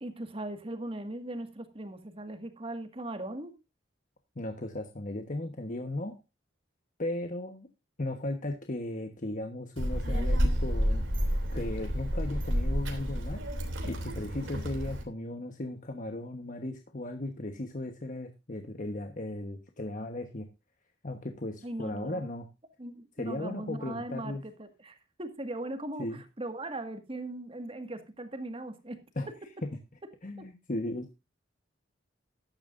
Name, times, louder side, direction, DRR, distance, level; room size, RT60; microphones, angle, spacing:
voice 1, 0.0-3.6 21.6-22.2 22.8-29.0 30.4-30.5, right 1 dB, 30° right, 8 dB, 1.8 m, -39 dB
voice 2, 4.4-6.2 7.0-7.7 8.0-11.0 11.5-13.4 13.8-20.5 21.0-22.5 23.2-24.4 26.0-26.2 29.2-29.3 29.6-29.8 30.2-31.1, left 1 dB, 45° left, 5 dB, 1.2 m, -36 dB
Child speech kid speaking, 9.8-15.0, equal, 85° right, 3.0 m, -30 dB
14.5 x 11.0 x 2.6 m, 0.25 s
head